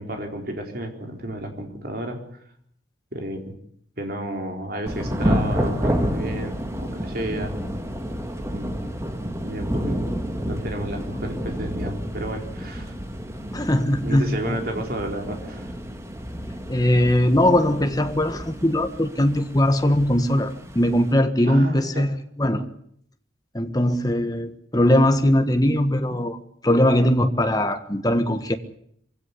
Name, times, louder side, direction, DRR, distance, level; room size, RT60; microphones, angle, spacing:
voice 1, 0.0-2.2 3.1-3.6 4.0-7.5 8.5-8.8 9.4-10.1 10.5-12.9 14.0-15.7 21.4-22.1, right 1 dB, 50° right, 3 dB, 4.2 m, -32 dB
Thunder / Rain, 4.9-21.1, equal, 15° right, 1.8 m, -30 dB
voice 2, 13.5-14.6 16.7-22.1 22.4-22.6 23.5-26.4 26.6-28.6, left 1 dB, 20° left, 7 dB, 1.5 m, -20 dB
23.5 x 16.5 x 9.9 m, 0.67 s
head